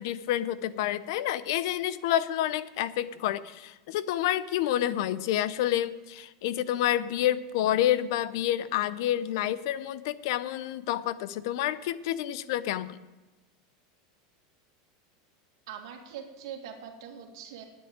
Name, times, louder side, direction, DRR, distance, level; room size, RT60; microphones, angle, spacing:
voice 1, 0.0-13.0, left 12 dB, 65° left, 16 dB, 0.6 m, -29 dB
voice 2, 15.7-17.6, right 8 dB, 75° right, 3 dB, 2.2 m, -42 dB
9.7 x 8.6 x 8.8 m, 1.1 s
supercardioid pair, 145°, 2 cm